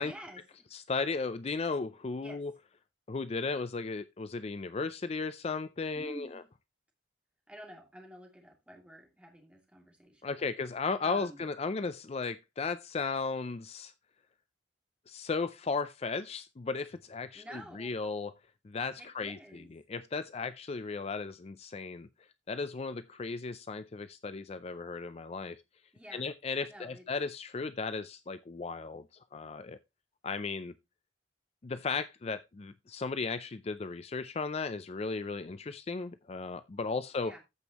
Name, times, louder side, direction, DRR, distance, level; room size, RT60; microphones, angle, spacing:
voice 1, 0.0-0.7 2.2-2.4 5.9-6.5 7.5-10.5 11.0-11.5 17.3-18.0 19.0-19.7 25.9-26.3 26.7-27.1 37.2-37.4, equal, 5° right, 2.5 m, -49 dB
voice 2, 0.7-2.5 3.1-6.3 10.2-13.9 15.1-18.3 18.6-19.4 19.9-22.1 22.5-25.6 26.1-29.0 29.3-29.8 30.2-30.7 31.6-37.3, left 4 dB, 35° left, 0.4 m, -35 dB
14.5 x 5.3 x 2.9 m
head